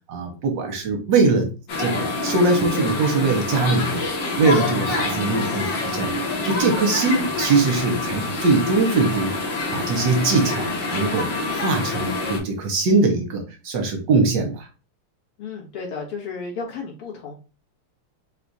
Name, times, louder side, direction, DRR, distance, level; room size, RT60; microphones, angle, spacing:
voice 1, 0.1-1.5 1.8-4.1 4.4-6.2 6.4-9.3 9.7-14.7, right 3 dB, 65° right, 3 dB, 1.4 m, -21 dB
sound 1, 1.7-12.4, left 2 dB, 60° left, 1.7 m, -26 dB
voice 2, 15.4-17.3, left 4 dB, 85° left, -1 dB, 2.4 m, -33 dB
4.8 x 2.4 x 4.0 m, 0.34 s
omnidirectional pair, 2.4 m